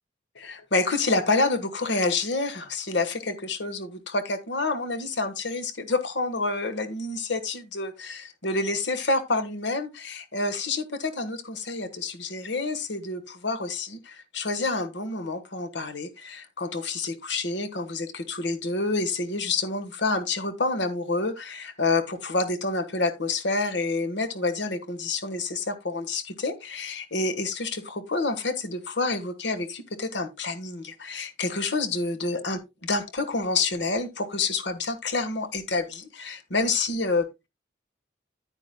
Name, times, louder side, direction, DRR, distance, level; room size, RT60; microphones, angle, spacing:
voice 1, 0.3-37.5, left 3 dB, 70° left, 1.4 m, -28 dB
9.8 x 9.3 x 2.2 m
head